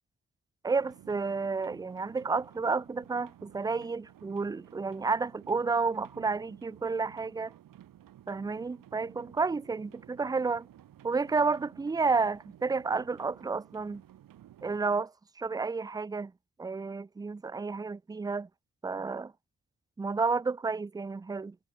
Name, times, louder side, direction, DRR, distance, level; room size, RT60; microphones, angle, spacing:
voice 1, 0.6-7.5 8.3-10.7 11.0-14.0 14.6-16.3 16.6-18.5 18.8-19.3 20.0-21.6, right 4 dB, 15° right, 0.3 m, -31 dB
sound 1, 0.8-14.8, right 12 dB, 85° right, 1.0 m, -54 dB
cardioid pair, 85°, 32 cm